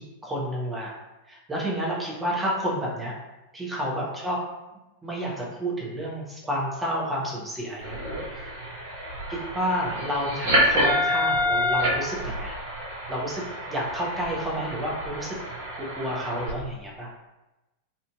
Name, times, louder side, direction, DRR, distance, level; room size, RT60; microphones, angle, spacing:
voice 1, 0.2-0.9 1.3-3.1 3.5-4.4 5.0-8.0 9.3-12.5 13.1-15.4 15.8-17.1, equal, 10° right, -5 dB, 0.8 m, -30 dB
sound 1, 7.8-16.5, equal, 55° right, 0.7 m, -28 dB
2.6 x 2.5 x 2.2 m, 1.0 s
figure-of-eight pair, 90°, 0 cm